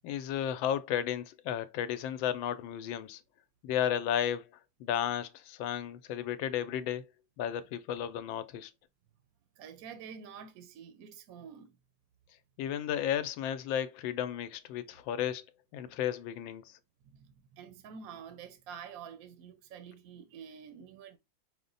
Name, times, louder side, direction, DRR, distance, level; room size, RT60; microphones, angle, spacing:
voice 1, 0.0-3.2 3.6-4.5 4.8-7.0 7.4-8.7 12.6-15.4 15.7-16.8, left 10 dB, 85° left, 1.3 m, -33 dB
voice 2, 9.6-11.8 17.0-21.2, right 7 dB, 65° right, 0.9 m, -48 dB
5.4 x 2.1 x 3.8 m
omnidirectional pair, 2.0 m